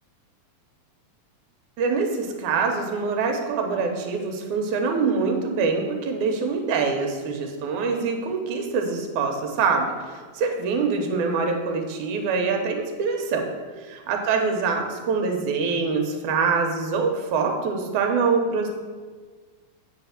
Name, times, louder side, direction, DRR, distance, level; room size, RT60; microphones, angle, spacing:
voice 1, 1.8-13.5 13.9-18.7, right 4 dB, 85° right, 3 dB, 2.4 m, -24 dB
8.0 x 5.1 x 5.8 m, 1.5 s
omnidirectional pair, 3.4 m